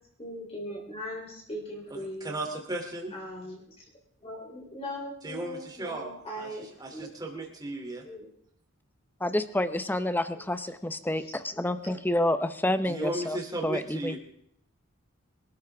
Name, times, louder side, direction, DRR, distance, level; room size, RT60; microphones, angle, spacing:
voice 1, 0.2-2.4 3.1-3.8 4.2-7.1 8.0-8.3 10.3-10.4 11.2-11.7, equal, 25° left, -3 dB, 3.4 m, -40 dB
voice 2, 1.9-3.1 5.2-6.1 6.4-8.0 12.9-14.2, right 1 dB, 20° right, 1 dB, 2.9 m, -36 dB
voice 3, 9.2-11.2 11.6-13.4 13.6-14.1, left 1 dB, 10° left, 11 dB, 0.8 m, -28 dB
24.5 x 12.5 x 3.5 m, 0.69 s
head